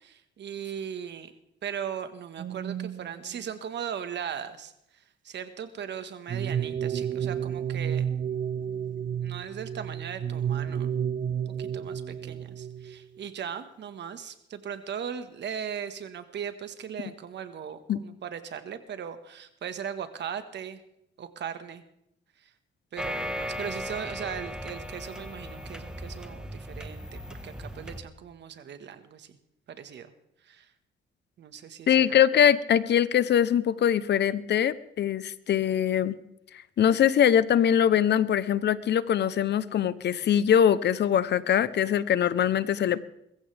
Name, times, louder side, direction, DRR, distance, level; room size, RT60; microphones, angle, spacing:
voice 1, 0.0-1.3 1.6-8.1 8.6-10.9 11.2-20.8 21.2-21.8 22.4-22.5 22.9-29.4 29.7-30.1 30.4-30.7 31.4-32.2, right 8 dB, 60° right, 9 dB, 1.6 m, -38 dB
sound 1, 2.4-3.5 6.3-13.3, right 8 dB, 40° right, 0.5 m, -31 dB
sound 2, 23.0-28.0, equal, 5° right, 1.5 m, -37 dB
voice 2, 31.9-36.2 36.8-43.0, left 9 dB, 60° left, 16 dB, 0.9 m, -22 dB
22.0 x 15.0 x 3.5 m, 0.79 s
cardioid pair, 90°, 20 cm